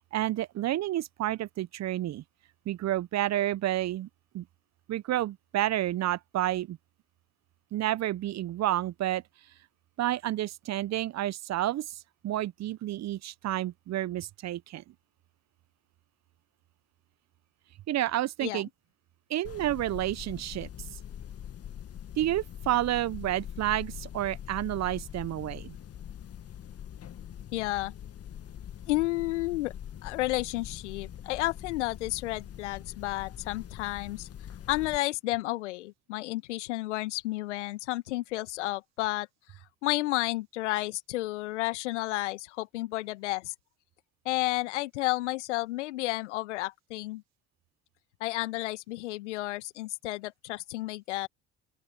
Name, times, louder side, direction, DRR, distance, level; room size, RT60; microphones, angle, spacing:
voice 1, 0.1-2.2 2.7-4.1 4.3-4.4 4.9-6.8 7.7-9.2 10.0-12.0 12.2-14.8 17.9-18.7 19.3-20.7 22.2-25.8, right 14 dB, 45° right, 1.2 m, -30 dB
sound 1, 19.4-35.0, left 10 dB, 40° left, 2.0 m, -43 dB
voice 2, 27.5-27.9 28.9-29.7 30.0-34.3 34.7-39.3 39.8-43.5 44.3-47.2 48.2-51.3, left 18 dB, 75° left, 2.2 m, -31 dB
open air
figure-of-eight pair, 55°, 36 cm